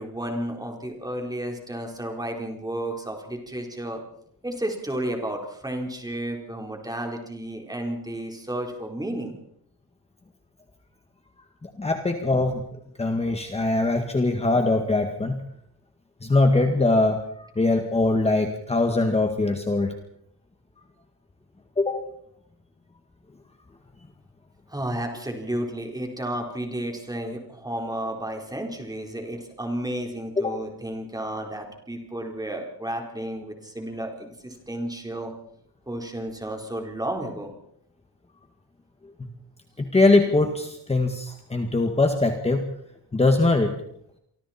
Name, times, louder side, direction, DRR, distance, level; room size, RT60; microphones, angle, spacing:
voice 1, 0.0-4.0 4.4-9.3 24.7-35.3 35.9-37.5, right 1 dB, 10° right, 2 dB, 4.3 m, -32 dB
voice 2, 11.6-12.6 13.0-15.4 16.2-19.9 21.8-22.0 30.4-30.6 39.8-42.7 43.1-43.7, left 2 dB, 15° left, 4 dB, 1.9 m, -22 dB
28.5 x 25.0 x 4.4 m, 0.71 s
cardioid pair, 150°, 39 cm